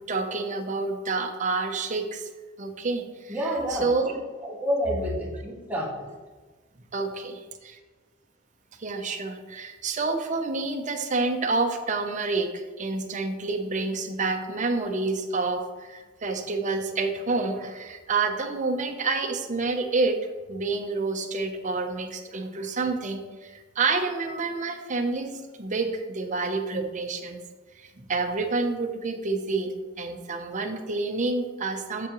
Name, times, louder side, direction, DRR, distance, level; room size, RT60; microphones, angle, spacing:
voice 1, 0.0-2.3 2.6-3.4 3.8-4.1 6.9-7.8 8.8-20.2 20.5-27.4 27.8-32.1, right 3 dB, 40° right, 4 dB, 0.7 m, -28 dB
voice 2, 3.3-6.1, equal, 10° right, -4 dB, 1.4 m, -29 dB
7.1 x 6.9 x 3.0 m, 1.3 s
head